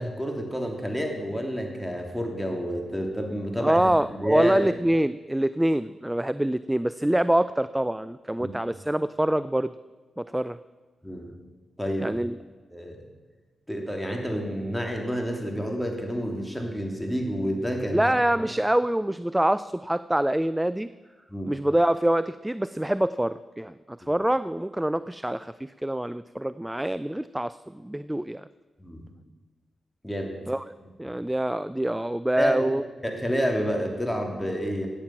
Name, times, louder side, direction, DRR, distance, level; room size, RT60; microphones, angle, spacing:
voice 1, 0.0-4.6 8.4-8.5 11.0-11.3 11.8-12.2 12.7-13.0 13.7-18.1 18.4-18.5 21.3-21.5 24.0-24.1 28.8-29.0 30.0-30.4 32.4-32.7 33.0-34.9, equal, 5° left, 2 dB, 3.0 m, -29 dB
voice 2, 3.6-9.7 10.2-10.6 12.0-12.4 17.9-20.9 21.4-28.5 30.5-30.6 31.0-32.8, right 1 dB, 10° right, 16 dB, 0.3 m, -25 dB
15.0 x 8.9 x 5.9 m, 1.4 s
supercardioid pair, 45°, 0 cm